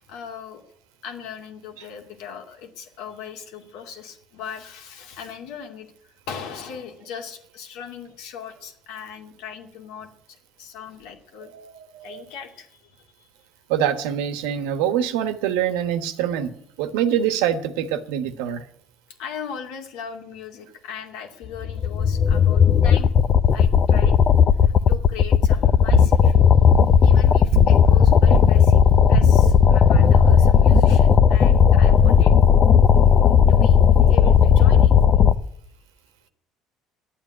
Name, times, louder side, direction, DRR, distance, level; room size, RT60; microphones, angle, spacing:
voice 1, 0.1-0.7 1.0-5.9 6.3-11.5 12.0-13.3 19.2-23.1 23.5-24.2 24.6-26.3 27.0-28.8 29.1-32.4 33.5-33.8 34.1-35.0, left 7 dB, 80° left, 4 dB, 2.4 m, -38 dB
voice 2, 11.5-12.2 13.7-16.5 16.8-18.6, right 9 dB, 90° right, 10 dB, 1.3 m, -24 dB
sound 1, 21.6-35.3, left 8 dB, 45° left, 0.7 m, -15 dB
sound 2, 25.9-26.3 26.7-27.1 27.5-27.9 28.3-28.7 29.1-29.6 29.9-30.4 30.7-30.9, right 12 dB, 65° right, 0.5 m, -23 dB
11.0 x 9.0 x 9.8 m, 0.72 s
supercardioid pair, 105°, 0 cm